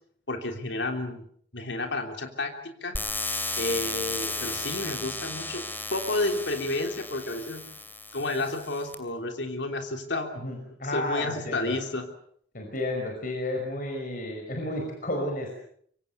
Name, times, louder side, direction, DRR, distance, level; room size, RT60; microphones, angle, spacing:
voice 1, 0.3-1.2 1.5-3.0 3.5-5.6 5.9-7.6 8.1-10.4 10.9-12.1, left 2 dB, 85° left, 5 dB, 3.4 m, -31 dB
sound 1, 2.9-8.9, left 2 dB, 10° left, 2.6 m, -34 dB
voice 2, 10.3-11.8 12.5-15.6, left 1 dB, 50° left, 2 dB, 5.5 m, -32 dB
25.0 x 24.5 x 6.9 m, 0.63 s
head